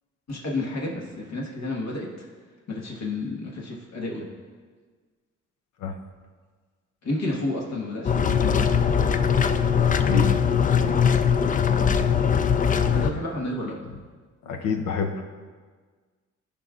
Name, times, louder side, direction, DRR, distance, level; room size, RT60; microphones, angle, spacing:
voice 1, 0.3-2.1 2.7-4.3 7.0-8.8 12.9-13.7, left 2 dB, 60° left, -2 dB, 1.4 m, -31 dB
sound 1, 8.0-13.1, left 7 dB, 30° left, 0.4 m, -21 dB
voice 2, 14.5-15.2, left 5 dB, 85° left, 4 dB, 0.8 m, -27 dB
13.5 x 5.2 x 2.4 m, 1.5 s
cardioid pair, 90°, 30 cm